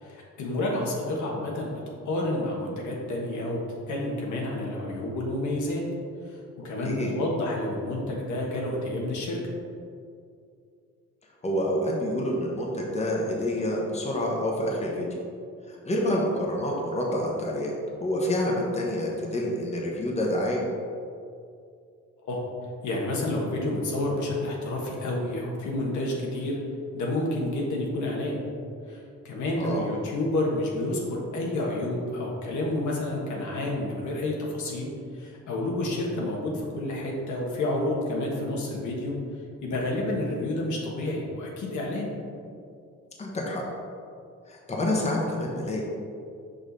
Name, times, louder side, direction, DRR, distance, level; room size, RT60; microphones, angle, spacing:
voice 1, 0.0-1.8 2.0-3.6 3.9-5.8 6.2-6.4 6.6-9.4 22.3-22.4 22.8-26.6 26.9-28.4 28.9-39.2 39.6-42.1, left 1 dB, 75° left, -2 dB, 1.3 m, -29 dB
voice 2, 11.4-15.1 15.7-17.7 18.0-20.6 29.6-29.8 43.2-43.6 44.5-45.8, left 1 dB, 20° left, -2 dB, 1.1 m, -28 dB
5.3 x 5.0 x 4.0 m, 2.4 s
cardioid pair, 90°, 30 cm